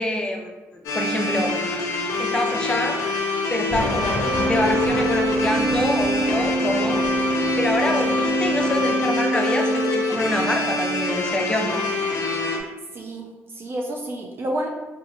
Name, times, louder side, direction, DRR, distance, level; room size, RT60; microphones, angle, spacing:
voice 1, 0.0-1.5 2.2-3.0 3.5-7.0 7.6-11.8, left 1 dB, 15° left, 2 dB, 0.4 m, -26 dB
sound 1, 0.8-12.6, left 2 dB, 70° left, 0.5 m, -26 dB
sound 2, 3.7-9.0, left 1 dB, 35° left, 1.1 m, -32 dB
Organ, 4.2-10.7, right 2 dB, 10° right, 1.2 m, -25 dB
voice 2, 12.9-14.7, right 1 dB, 40° right, 1 dB, 0.4 m, -30 dB
2.8 x 2.3 x 2.6 m, 1.2 s
cardioid pair, 80°, 6 cm